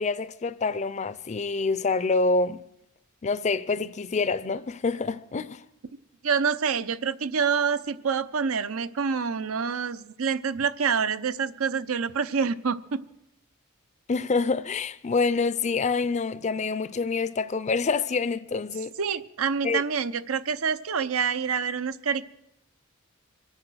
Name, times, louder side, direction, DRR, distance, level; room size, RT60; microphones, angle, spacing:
voice 1, 0.0-2.6 3.2-5.6 14.1-18.9 19.6-19.8, left 4 dB, 35° left, 0.5 m, -26 dB
voice 2, 6.2-13.0 19.0-22.2, right 6 dB, 80° right, 0.7 m, -27 dB
24.5 x 8.8 x 6.3 m
head